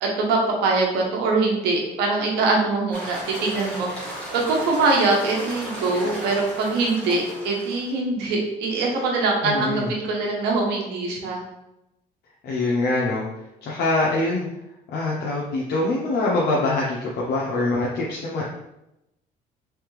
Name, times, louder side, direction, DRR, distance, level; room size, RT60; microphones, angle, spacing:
voice 1, 0.0-11.4, right 3 dB, 90° right, 0 dB, 1.0 m, -23 dB
sound 1, 2.9-8.0, equal, 5° left, 1.5 m, -35 dB
voice 2, 9.4-9.9 12.4-13.2 13.6-14.5 14.9-18.4, left 2 dB, 70° left, -4 dB, 0.7 m, -24 dB
3.4 x 3.3 x 3.2 m, 0.89 s
cardioid pair, 110°, 17 cm